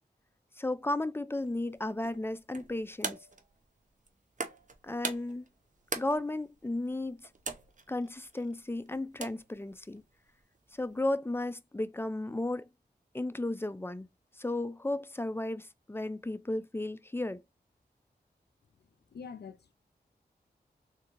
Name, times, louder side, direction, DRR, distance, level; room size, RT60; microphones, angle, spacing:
voice 1, 0.6-3.2 4.8-5.5 5.9-7.3 7.9-10.0 10.7-12.7 13.1-14.1 14.4-17.4, left 2 dB, 15° left, 0.4 m, -34 dB
sound 1, 1.3-11.0, right 3 dB, 45° right, 0.7 m, -44 dB
voice 2, 18.8-19.7, left 6 dB, 70° left, 0.5 m, -46 dB
3.6 x 2.6 x 2.9 m
cardioid pair, 50°, 18 cm